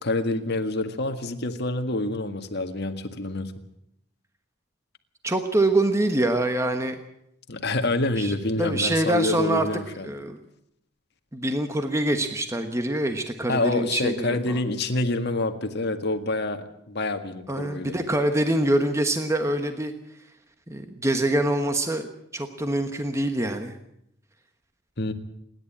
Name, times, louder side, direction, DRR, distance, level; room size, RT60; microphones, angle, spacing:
voice 1, 0.0-3.5 7.5-10.1 13.5-18.0 25.0-25.1, left 2 dB, 50° left, 6 dB, 1.8 m, -27 dB
voice 2, 5.2-7.0 8.2-9.7 10.0-10.4 11.3-14.4 17.5-19.9 20.7-23.8, right 1 dB, 15° right, 6 dB, 1.2 m, -25 dB
27.0 x 11.0 x 8.8 m, 0.76 s
head